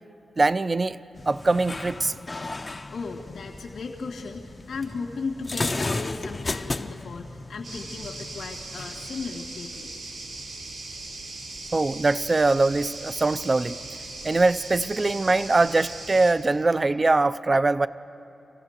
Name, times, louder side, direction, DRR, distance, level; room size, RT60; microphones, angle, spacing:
voice 1, 0.4-1.0 1.3-2.1 2.5-2.6 11.7-13.8 14.2-17.9, right 3 dB, 30° right, 14 dB, 0.4 m, -22 dB
sound 1, 1.2-9.2, left 2 dB, 30° left, 0.6 m, -34 dB
voice 2, 2.1-2.6 2.9-9.9, left 4 dB, 75° left, -2 dB, 1.8 m, -36 dB
sound 2, 7.6-16.3, right 2 dB, 80° right, 3.5 m, -39 dB
27.0 x 16.5 x 6.6 m, 2.8 s
wide cardioid pair, 95°, 0 cm